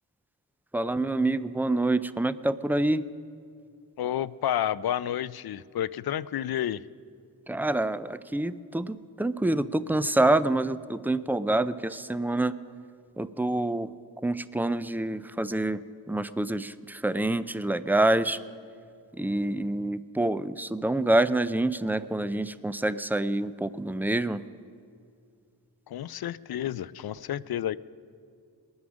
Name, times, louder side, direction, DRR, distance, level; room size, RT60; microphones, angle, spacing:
voice 1, 0.7-3.0 7.5-12.6 13.2-13.9 14.2-18.4 19.1-24.4, right 2 dB, 5° right, 14 dB, 0.3 m, -27 dB
voice 2, 4.0-6.8 25.9-27.8, left 11 dB, 55° left, 18 dB, 0.5 m, -30 dB
20.5 x 9.6 x 6.2 m, 2.3 s
cardioid pair, 80°, 45 cm